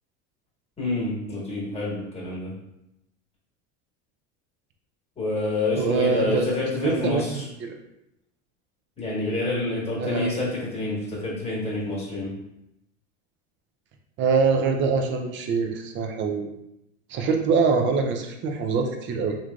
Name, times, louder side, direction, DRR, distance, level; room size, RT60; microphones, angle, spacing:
voice 1, 0.8-2.5 5.2-7.4 9.0-12.3, left 2 dB, 15° left, -6 dB, 1.4 m, -28 dB
voice 2, 5.8-6.5 6.7-7.7 10.0-10.3 14.2-16.5 17.1-19.4, right 5 dB, 30° right, 4 dB, 0.4 m, -24 dB
3.0 x 2.5 x 2.3 m, 0.86 s
supercardioid pair, 105°, 39 cm